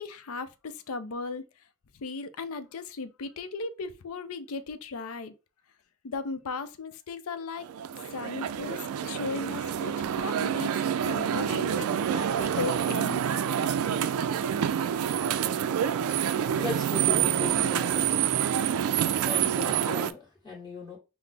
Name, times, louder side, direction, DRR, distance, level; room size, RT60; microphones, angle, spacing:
voice 1, 0.0-1.4 1.9-5.3 6.0-7.7 8.1-10.8 11.1-13.2, left 4 dB, 90° left, 0.5 m, -36 dB
sound 1, 7.6-20.1, right 9 dB, 90° right, 0.3 m, -27 dB
voice 2, 16.5-18.2 19.1-21.0, left 3 dB, 20° left, 1.5 m, -37 dB
5.8 x 2.0 x 3.3 m
head